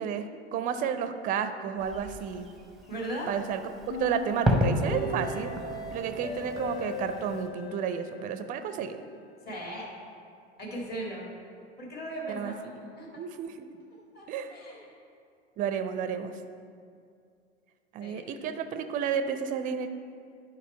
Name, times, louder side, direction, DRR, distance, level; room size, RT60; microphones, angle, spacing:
voice 1, 0.0-2.5 3.3-5.6 5.9-9.0 12.3-12.5 13.2-13.8 14.3-14.5 15.6-16.4 17.9-19.9, right 7 dB, 25° right, 10 dB, 0.4 m, -32 dB
Fireworks, 1.8-7.5, equal, ahead, 0.8 m, -33 dB
voice 2, 2.9-3.3 9.5-9.9 10.6-11.3 11.8-12.5 13.0-13.1 14.1-14.9 18.0-18.4, right 1 dB, 30° left, -3 dB, 2.0 m, -38 dB
sound 1, 3.9-8.9, left 2 dB, 55° left, 1.1 m, -38 dB
10.0 x 5.3 x 4.3 m, 2.3 s
figure-of-eight pair, 80°, 33 cm